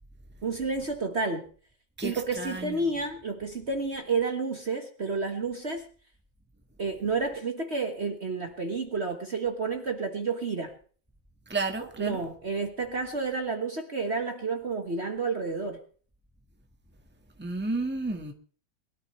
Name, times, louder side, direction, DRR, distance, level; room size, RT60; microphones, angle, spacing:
voice 1, 0.4-1.5 2.0-5.8 6.8-10.7 11.8-15.8, right 4 dB, 40° right, 1.6 m, -30 dB
voice 2, 2.0-3.0 11.5-12.2 17.4-18.3, right 3 dB, 5° right, 1.6 m, -32 dB
22.0 x 13.0 x 3.3 m
omnidirectional pair, 2.0 m